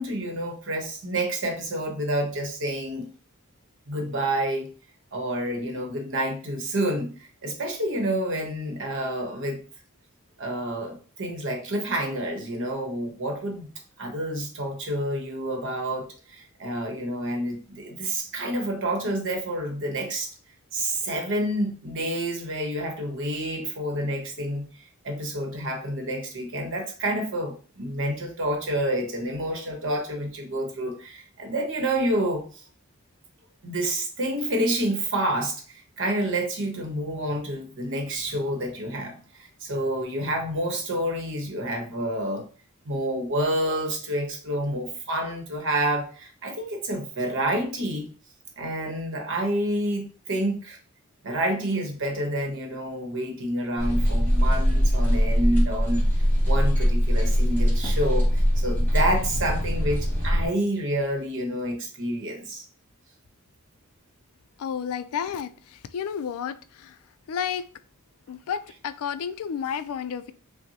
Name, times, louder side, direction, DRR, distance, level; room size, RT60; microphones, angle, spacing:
voice 1, 0.0-3.1 3.9-4.7 5.1-7.1 7.4-9.6 10.4-13.7 14.0-20.3 20.7-24.7 25.0-32.4 33.6-35.6 36.0-42.4 42.8-48.1 48.6-50.8 51.2-56.1 56.4-62.6, right 1 dB, 60° right, 1.0 m, -28 dB
sound 1, 53.8-60.5, equal, 10° left, 1.8 m, -22 dB
voice 2, 64.6-67.0 67.3-67.7 68.3-70.3, left 7 dB, 70° left, 0.3 m, -31 dB
5.9 x 2.1 x 2.7 m
head